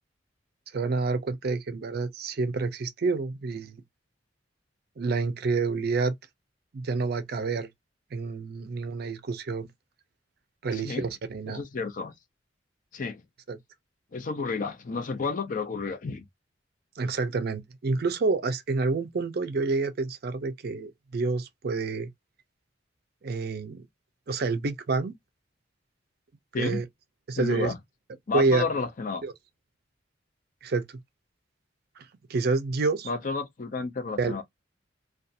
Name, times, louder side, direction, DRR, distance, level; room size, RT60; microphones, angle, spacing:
voice 1, 0.7-3.8 5.0-6.1 6.7-7.7 8.1-9.7 10.6-11.6 13.5-13.6 17.0-22.1 23.2-23.8 24.3-25.1 26.5-26.8 27.3-27.7 28.3-28.6 29.2-29.3 30.6-30.8 32.3-33.1 34.2-34.4, right 4 dB, 55° right, 0.5 m, -28 dB
voice 2, 10.7-11.1 11.5-12.1 12.9-13.2 14.1-16.2 26.5-26.8 27.4-27.8 28.3-29.2 33.0-34.4, left 4 dB, 45° left, 0.5 m, -31 dB
2.4 x 2.3 x 2.6 m
head